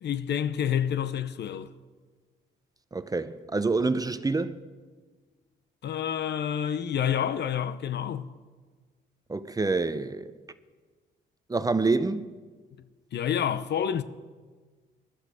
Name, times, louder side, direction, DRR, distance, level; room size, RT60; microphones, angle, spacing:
voice 1, 0.0-1.7 5.8-8.3 13.1-14.0, left 9 dB, 60° left, 0.7 m, -28 dB
voice 2, 2.9-4.6 9.3-10.3 11.5-12.3, right 3 dB, 20° right, 0.7 m, -27 dB
20.0 x 11.5 x 5.0 m
cardioid pair, 90°, 20 cm